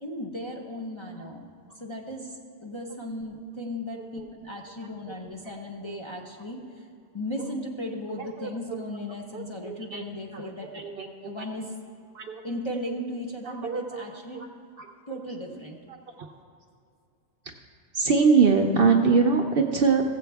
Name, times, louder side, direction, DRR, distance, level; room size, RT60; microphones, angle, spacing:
voice 1, 0.0-1.5 1.8-6.6 7.1-10.9 11.2-11.7 12.4-14.5 15.1-15.8, left 1 dB, 25° left, -2 dB, 0.7 m, -36 dB
voice 2, 3.9-4.2 5.5-5.6 5.8-5.9 8.1-8.5 9.3-10.0 10.3-11.5 12.1-12.4 13.6-14.0 14.3-14.5 14.8-15.2 16.2-16.3 17.9-20.0, right 5 dB, 55° right, 4 dB, 0.7 m, -24 dB
15.5 x 7.8 x 3.4 m, 2.5 s
omnidirectional pair, 1.3 m